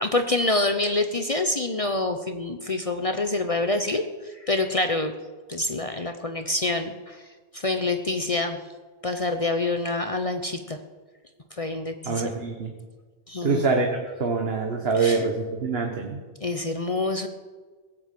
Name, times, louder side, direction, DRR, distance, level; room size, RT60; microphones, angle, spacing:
voice 1, 0.0-5.1 5.5-7.2 7.5-8.6 9.0-10.8 11.6-12.3 13.3-13.7 14.9-15.2 16.4-17.3, left 2 dB, 35° left, 7 dB, 0.9 m, -26 dB
voice 2, 12.1-12.7 13.4-13.9 14.2-16.2, right 4 dB, 70° right, 3 dB, 1.6 m, -25 dB
17.0 x 8.9 x 7.6 m, 1.4 s
omnidirectional pair, 1.1 m